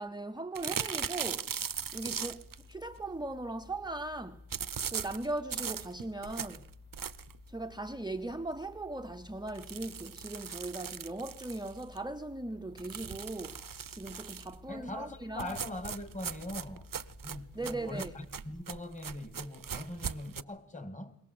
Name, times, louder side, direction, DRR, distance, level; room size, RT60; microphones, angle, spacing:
voice 1, 0.0-1.5 1.9-4.5 4.9-6.7 7.5-13.6 13.9-15.6 17.5-18.1, right 2 dB, 10° right, 0.8 m, -39 dB
sound 1, 0.5-2.6 4.5-7.4 7.9-8.0 8.3-8.4 8.7-8.8 9.5-12.0 12.8-14.6 15.4-20.4, right 7 dB, 55° right, 0.8 m, -39 dB
sound 2, 1.8-18.6, left 4 dB, 40° left, 2.3 m, -56 dB
voice 2, 14.7-16.9 17.2-21.1, left 1 dB, 20° left, 2.3 m, -42 dB
22.5 x 18.0 x 7.9 m
wide cardioid pair, 60°, 39 cm